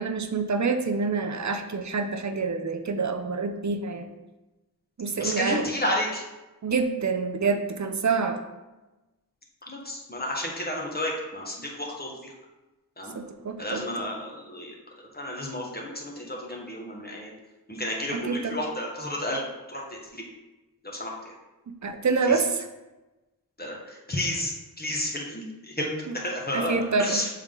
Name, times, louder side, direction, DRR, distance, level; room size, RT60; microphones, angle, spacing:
voice 1, 0.0-4.1 5.0-5.7 6.6-8.4 13.1-13.8 18.1-18.6 21.8-22.7 26.1-26.2 26.5-27.2, right 4 dB, 50° right, 7 dB, 0.6 m, -27 dB
voice 2, 5.2-6.2 9.6-12.3 13.0-13.2 13.6-17.3 17.7-20.2 20.8-21.3 22.3-22.4 23.6-27.3, left 1 dB, 25° left, -2 dB, 1.2 m, -32 dB
7.3 x 3.5 x 3.7 m, 1.1 s
wide cardioid pair, 80°, 37 cm